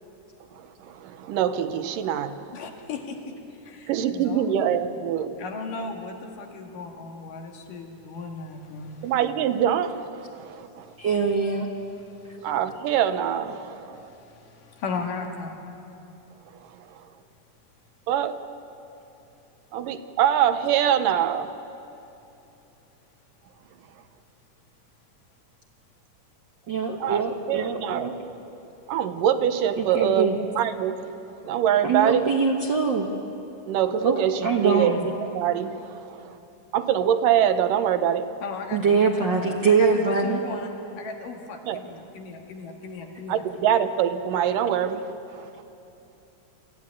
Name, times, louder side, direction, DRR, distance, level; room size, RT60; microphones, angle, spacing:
voice 1, 0.5-2.5 3.9-5.3 9.0-10.9 12.4-14.0 16.9-17.0 18.1-18.4 19.7-21.5 27.0-28.1 28.9-31.1 31.4-32.3 33.7-34.9 35.3-36.4 36.7-38.3 41.6-41.8 43.3-45.6, right 9 dB, 80° right, 10 dB, 2.5 m, -24 dB
voice 2, 2.5-3.4 3.6-4.5 5.4-9.1 10.9-11.0 12.1-12.5 14.0-15.6 38.4-39.4 39.7-43.7, left 4 dB, 80° left, 2 dB, 3.5 m, -37 dB
voice 3, 11.0-11.7 26.7-28.1 29.8-30.4 31.8-33.1 34.0-35.1 38.7-40.4, right 5 dB, 55° right, 1 dB, 1.3 m, -23 dB
24.0 x 15.0 x 9.8 m, 2.9 s
omnidirectional pair, 3.8 m